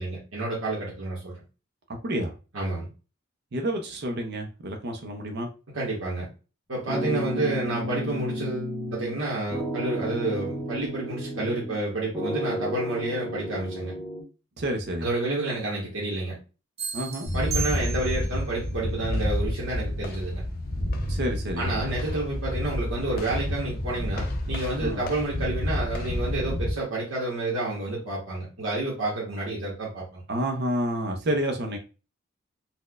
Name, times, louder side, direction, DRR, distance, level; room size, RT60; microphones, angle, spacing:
voice 1, 0.0-1.4 2.5-2.9 5.7-6.3 6.7-13.9 15.0-16.4 17.3-20.4 21.6-30.2, right 2 dB, 70° right, 1.0 m, -29 dB
voice 2, 3.5-5.5 14.6-15.1 16.9-17.3 21.1-21.8 24.8-25.0 30.3-31.8, right 1 dB, 50° right, 0.5 m, -29 dB
sound 1, 6.9-9.2 9.5-11.8 12.1-14.2, equal, ahead, 0.8 m, -32 dB
sound 2, 16.8-18.4, right 6 dB, 30° right, 0.8 m, -34 dB
sound 3, 17.3-26.7, left 1 dB, 45° left, 0.5 m, -29 dB
4.1 x 2.1 x 2.3 m
head